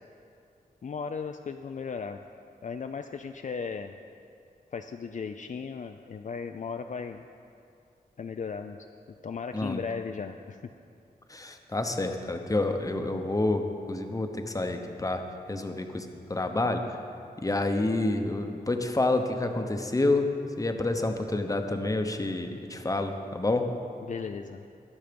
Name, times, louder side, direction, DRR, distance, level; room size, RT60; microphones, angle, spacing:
voice 1, 0.8-2.2 2.6-3.9 4.7-7.3 8.2-8.8 9.2-10.6 24.0-24.7, left 5 dB, 50° left, 6 dB, 0.4 m, -36 dB
voice 2, 11.3-17.0 17.4-20.3 20.6-23.7, left 2 dB, 20° left, 5 dB, 0.9 m, -28 dB
21.0 x 7.2 x 5.2 m, 2.5 s
wide cardioid pair, 130°, 16 cm